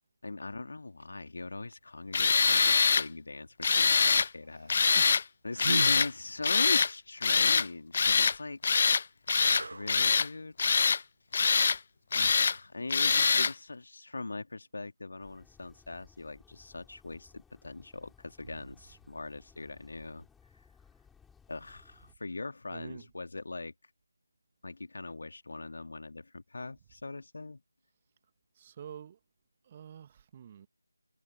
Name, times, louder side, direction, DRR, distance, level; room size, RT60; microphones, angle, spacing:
voice 1, 0.2-4.7 5.4-8.6 9.7-10.6 12.1-20.3 21.5-23.7 24.6-27.6, left 3 dB, 50° left, 2.1 m, -41 dB
sound 1, 0.8-1.0 1.7-1.8 2.4-2.9 5.5-6.1 9.3-9.9 12.9-13.1, right 3 dB, 50° right, 0.5 m, -36 dB
Tools, 2.1-3.1 3.6-4.3 4.7-5.2 5.6-6.1 6.4-6.9 7.2-7.7 7.9-8.4 8.6-9.0 9.3-10.3 10.6-11.0 11.3-11.8 12.1-12.6 12.9-13.5, left 5 dB, 35° left, 0.5 m, -24 dB
sound 2, 15.2-22.1, left 6 dB, 5° left, 6.6 m, -61 dB
voice 2, 22.7-23.0 28.6-29.2 29.7-30.7, right 9 dB, 20° right, 2.0 m, -47 dB
figure-of-eight pair, 160°, 0 cm